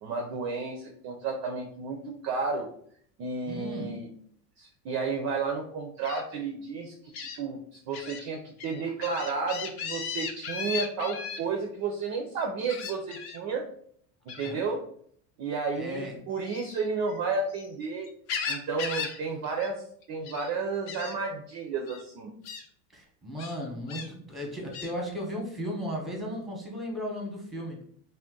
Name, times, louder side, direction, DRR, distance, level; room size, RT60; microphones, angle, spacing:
voice 1, 0.0-2.7 3.2-4.1 4.6-13.6 14.2-14.8 15.4-18.1 18.5-22.3, right 4 dB, 35° right, 3 dB, 0.4 m, -32 dB
voice 2, 3.5-4.1 14.4-14.6 15.7-16.2 22.9-27.8, equal, ahead, 0 dB, 0.8 m, -36 dB
Gull seagull, 6.0-6.2 7.1-7.4 7.9-8.2 8.6-11.4 12.7-13.4 14.3-14.6 16.4-17.7 18.0-19.2 19.4-19.7 20.0-20.5 20.9-21.1 21.9-22.0 22.4-22.6 23.4-24.1 24.7-24.9, left 6 dB, 50° left, 0.7 m, -36 dB
2.6 x 2.2 x 3.6 m, 0.62 s
supercardioid pair, 105°, 47 cm